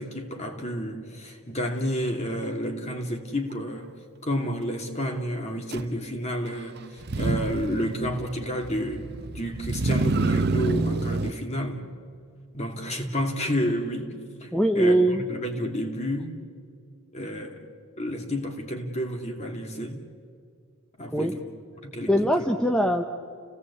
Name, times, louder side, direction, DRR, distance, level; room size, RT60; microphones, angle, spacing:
voice 1, 0.0-3.9 4.2-11.8 12.5-16.4 17.1-17.6 18.0-20.0 21.0-21.4 21.8-22.4, equal, 30° left, 3 dB, 2.6 m, -30 dB
Motor vehicle (road), 5.7-5.8 7.0-11.3, right 3 dB, 50° right, 0.7 m, -27 dB
voice 2, 14.5-15.2 21.1-21.3 22.1-23.0, right 1 dB, 5° left, 4 dB, 0.8 m, -21 dB
30.0 x 17.5 x 8.4 m, 2.3 s
head